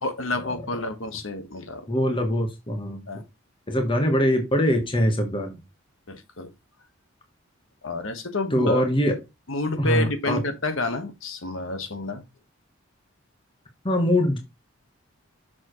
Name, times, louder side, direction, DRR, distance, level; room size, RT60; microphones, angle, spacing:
voice 1, 0.0-1.9 3.1-3.2 6.1-6.5 7.8-8.8 9.5-12.2, left 2 dB, 70° left, 1.4 m, -29 dB
voice 2, 1.9-3.1 3.7-5.6 8.5-9.2 9.8-10.4 13.8-14.4, equal, 25° left, 1.3 m, -22 dB
7.2 x 6.4 x 3.1 m
head